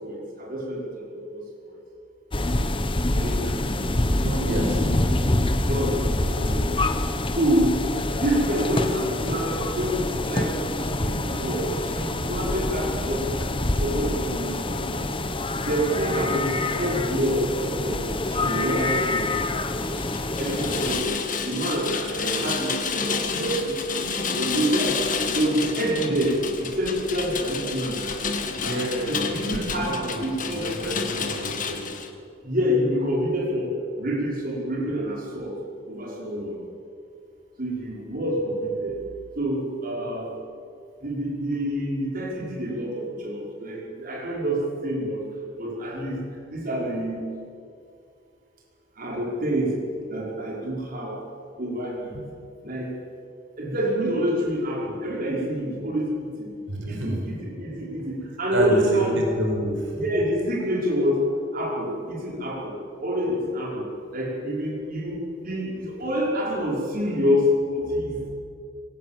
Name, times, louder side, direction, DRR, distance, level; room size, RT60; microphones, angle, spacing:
voice 1, 0.0-1.4 3.1-3.8 4.1-5.1 5.7-6.7 7.3-7.8 8.2-10.5 10.8-13.5 13.8-15.0 15.7-19.3 20.4-21.1 21.4-25.0 25.3-28.1 28.6-29.9 30.2-30.9 32.4-35.5 35.9-36.6 37.6-39.0 39.4-40.3 41.0-45.2 45.6-46.2 46.5-47.2 49.0-49.8 50.1-51.2 51.6-52.2 52.6-52.9 53.6-56.5 56.9-59.2 59.9-68.3, equal, 50° right, -3 dB, 5.4 m, -27 dB
sound 1, 2.3-21.0, left 2 dB, 25° left, 1.1 m, -26 dB
voice 2, 4.4-4.8 28.5-31.8 56.7-57.2 58.5-59.8, equal, 80° right, 0 dB, 5.3 m, -29 dB
Rain, 19.7-32.1, left 5 dB, 45° left, 1.9 m, -30 dB
23.5 x 18.0 x 7.7 m, 2.3 s
head